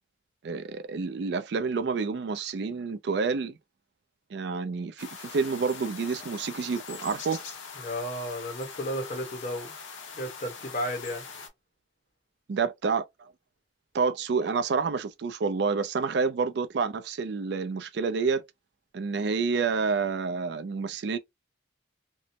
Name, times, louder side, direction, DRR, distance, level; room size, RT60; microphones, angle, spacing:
voice 1, 0.4-3.6 4.3-7.4 12.5-13.1 13.9-18.4 18.9-21.2, right 5 dB, 60° right, 0.4 m, -28 dB
sound 1, 5.0-11.5, left 5 dB, 90° left, 0.8 m, -42 dB
voice 2, 7.8-9.7 10.1-11.2, equal, 45° left, 1.1 m, -33 dB
3.0 x 2.0 x 2.8 m
head